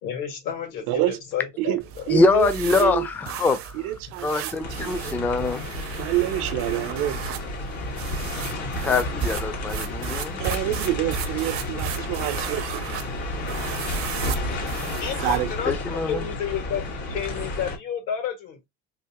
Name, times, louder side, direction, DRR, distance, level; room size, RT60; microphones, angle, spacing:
voice 1, 0.0-2.0 7.9-8.8 15.0-15.7 16.1-16.8 17.1-18.6, left 8 dB, 80° left, 2.1 m, -31 dB
voice 2, 0.9-1.2 1.6-3.1 3.7-4.5 4.8-5.2 6.0-7.2 10.4-12.9 15.2-15.5, right 15 dB, 90° right, 0.7 m, -27 dB
sound 1, 1.8-15.6, right 9 dB, 50° right, 0.5 m, -35 dB
voice 3, 2.1-3.8 4.2-5.7 8.8-10.4 15.7-16.2, left 3 dB, 5° left, 0.3 m, -23 dB
sound 2, 4.6-17.8, left 2 dB, 55° left, 1.8 m, -31 dB
3.5 x 2.9 x 2.8 m
cardioid pair, 140°, 29 cm